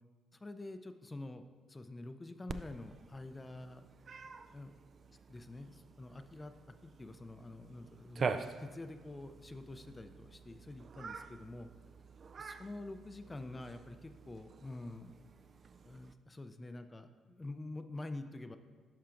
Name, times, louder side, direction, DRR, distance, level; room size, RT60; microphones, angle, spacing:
voice 1, 0.3-3.8 4.5-4.7 5.3-6.5 6.8-11.7 12.4-15.1 15.8-18.6, left 2 dB, 20° left, 9 dB, 0.4 m, -47 dB
Cat, 2.5-16.1, right 5 dB, 45° right, 0.3 m, -46 dB
10.5 x 5.6 x 2.5 m, 1.5 s
cardioid pair, 90°, 0 cm